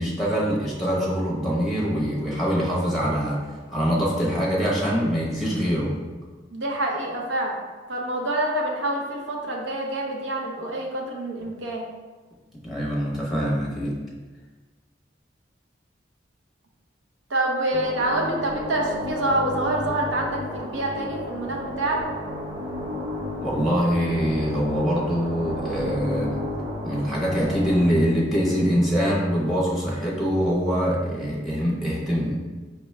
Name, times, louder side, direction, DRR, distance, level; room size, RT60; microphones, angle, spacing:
voice 1, 0.0-5.9 12.6-14.0 23.4-26.4 26.8-32.4, equal, ahead, -5 dB, 0.8 m, -24 dB
voice 2, 6.5-7.6 7.9-11.9 17.3-22.0, right 1 dB, 80° right, 0 dB, 0.7 m, -26 dB
sound 1, 17.7-27.9, left 1 dB, 20° right, 1.1 m, -32 dB
5.1 x 2.2 x 3.2 m, 1.3 s
head